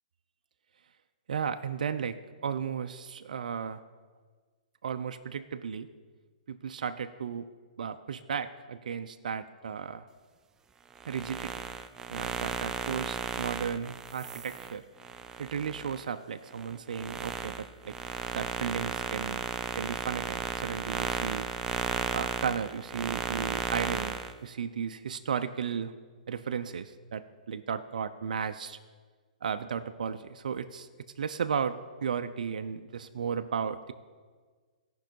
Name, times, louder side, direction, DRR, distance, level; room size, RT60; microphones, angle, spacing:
voice 1, 1.3-3.8 4.8-5.9 6.5-7.5 7.8-10.1 11.1-11.5 12.1-14.8 15.4-18.0 18.3-19.4 19.8-21.5 22.1-25.9 26.3-28.8 29.4-30.9 31.2-33.9, right 7 dB, 75° right, 9 dB, 0.5 m, -34 dB
sound 1, 10.9-16.0 16.5-24.3, right 6 dB, 15° right, 0.3 m, -34 dB
16.0 x 5.4 x 4.5 m, 1.5 s
hypercardioid pair, 140°, 4 cm